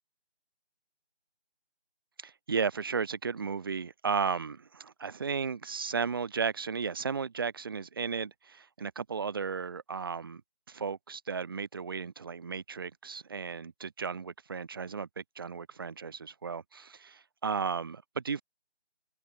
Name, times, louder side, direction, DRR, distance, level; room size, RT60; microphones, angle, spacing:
voice 1, 2.2-10.4 10.7-18.4, right 5 dB, 20° right, 2.4 m, -34 dB
figure-of-eight pair, 170°, 33 cm